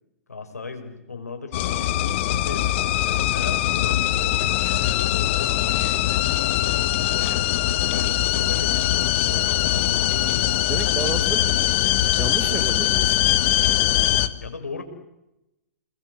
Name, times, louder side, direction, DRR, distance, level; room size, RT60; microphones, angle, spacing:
voice 1, 0.3-1.9 2.3-2.7 3.0-7.5 7.9-11.4 14.3-14.8, left 4 dB, 85° left, 6.4 m, -38 dB
sound 1, 1.5-14.3, left 13 dB, 50° left, 1.7 m, -22 dB
voice 2, 10.7-11.7 12.2-13.3, right 7 dB, 20° right, 1.8 m, -32 dB
29.5 x 21.5 x 8.3 m
figure-of-eight pair, 110°, 8 cm